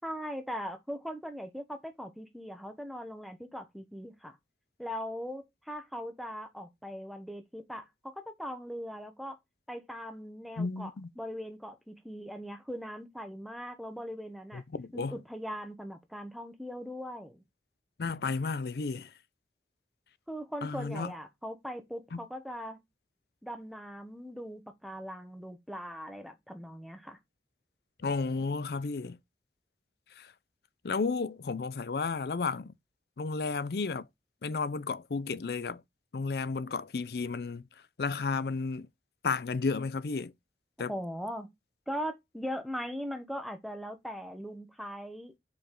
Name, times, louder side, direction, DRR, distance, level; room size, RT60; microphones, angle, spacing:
voice 1, 0.0-4.4 4.8-9.4 9.7-10.9 11.2-14.6 14.9-17.4 20.3-22.8 23.4-27.2 40.9-41.5 41.9-45.3, equal, ahead, 1.0 m, -40 dB
voice 2, 10.6-11.1 14.5-15.2 18.0-19.1 20.6-21.1 22.1-22.2 28.0-29.2 30.2-30.3 30.8-32.7 33.2-34.1 34.4-35.8 36.1-37.7 38.0-38.9 39.2-40.3 40.8-40.9, left 4 dB, 65° left, 0.5 m, -32 dB
5.1 x 4.9 x 3.8 m
head